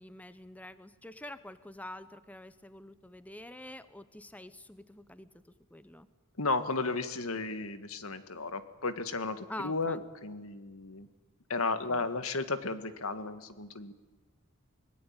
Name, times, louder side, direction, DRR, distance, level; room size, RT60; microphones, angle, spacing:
voice 1, 0.0-5.4 5.7-6.1 9.5-10.0 11.9-12.1, left 1 dB, 5° left, 13 dB, 0.7 m, -46 dB
voice 2, 6.4-11.1 11.5-13.9, left 3 dB, 75° left, 11 dB, 1.7 m, -34 dB
25.0 x 19.5 x 8.9 m, 1.3 s
head